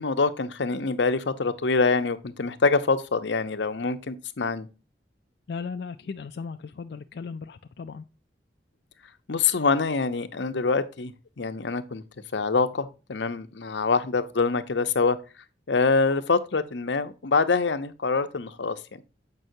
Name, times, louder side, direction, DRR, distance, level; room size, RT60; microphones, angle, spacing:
voice 1, 0.0-4.7 9.3-12.0 12.3-15.2 15.7-19.0, left 4 dB, 85° left, 0.7 m, -25 dB
voice 2, 5.5-8.0, left 5 dB, 65° left, 0.4 m, -36 dB
7.8 x 5.4 x 2.7 m
head